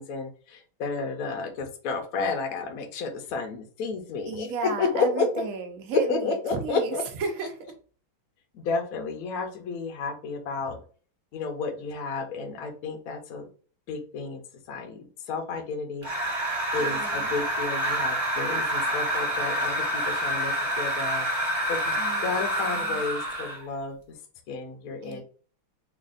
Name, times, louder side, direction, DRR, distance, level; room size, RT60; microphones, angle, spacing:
voice 1, 0.0-4.5 4.8-5.3 6.1-7.0 8.5-10.8 11.3-13.5 13.9-14.4 14.7-16.0 16.7-21.3 21.7-22.0 22.2-24.0 24.5-25.2, left 4 dB, 65° left, 5 dB, 0.9 m, -31 dB
voice 2, 4.3-7.6 16.8-17.3 21.9-23.0 25.0-25.2, right 5 dB, 60° right, 4 dB, 0.9 m, -34 dB
sound 1, 16.0-23.7, right 1 dB, 25° right, 0.8 m, -28 dB
3.9 x 3.3 x 2.4 m, 0.40 s
omnidirectional pair, 2.3 m